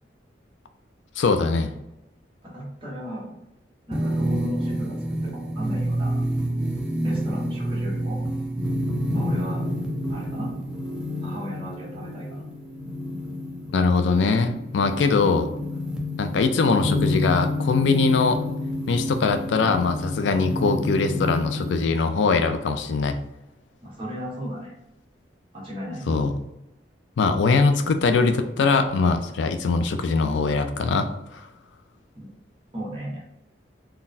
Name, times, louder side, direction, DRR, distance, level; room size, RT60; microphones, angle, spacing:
voice 1, 1.2-1.7 13.7-15.5 16.2-18.4 18.9-23.2 26.1-26.3 27.2-31.5, left 4 dB, 80° left, 8 dB, 0.4 m, -22 dB
voice 2, 2.4-3.4 3.9-6.2 7.0-8.3 9.1-9.6 10.1-10.5 11.2-12.4 23.8-24.7 25.5-26.2 32.1-32.3 32.7-33.2, equal, 30° right, -6 dB, 1.2 m, -35 dB
sound 1, 3.9-21.9, equal, 5° right, 0.4 m, -28 dB
3.9 x 2.1 x 2.6 m, 0.88 s
head